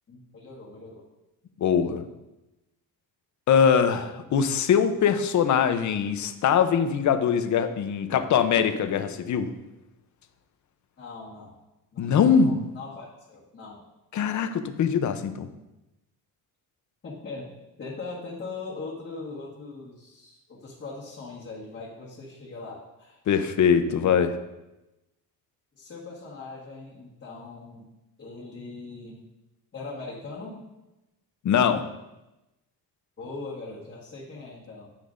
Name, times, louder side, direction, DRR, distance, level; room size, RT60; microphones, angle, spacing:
voice 1, 0.1-1.0 11.0-11.6 11.9-13.8 17.0-23.2 24.1-24.2 25.7-27.9 28.2-29.2 29.7-30.6 33.2-34.9, left 3 dB, 30° left, -7 dB, 1.6 m, -40 dB
voice 2, 1.6-2.0 3.5-9.5 12.0-12.6 14.1-15.5 23.3-24.3 31.4-31.9, left 7 dB, 50° left, 9 dB, 0.7 m, -22 dB
10.0 x 9.0 x 2.5 m, 0.99 s
cardioid pair, 155°, 37 cm